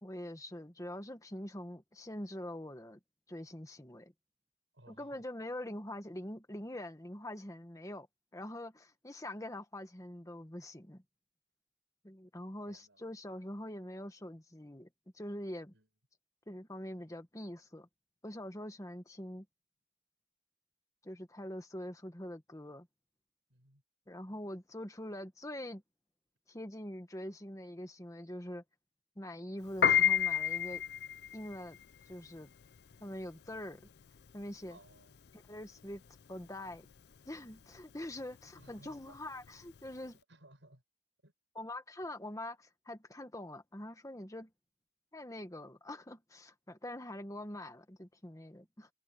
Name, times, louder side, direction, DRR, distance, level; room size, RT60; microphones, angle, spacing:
voice 1, 0.0-3.0 3.3-4.1 4.9-8.1 8.3-11.0 12.0-14.9 15.1-15.7 16.5-17.9 18.2-19.4 21.0-22.9 24.1-25.8 26.5-28.6 29.2-30.8 31.3-31.8 32.1-32.5 33.0-33.9 34.3-34.8 35.3-36.0 36.3-36.9 37.3-40.2 41.5-44.5 45.1-48.9, left 1 dB, 20° left, 1.5 m, -44 dB
voice 2, 4.7-5.3 12.7-13.0 15.7-15.9 23.5-23.8 34.7-35.2 38.6-39.2 40.0-40.8 41.2-41.3, right 1 dB, 80° right, 7.1 m, -60 dB
Piano, 29.7-40.1, left 9 dB, 60° left, 0.5 m, -33 dB
head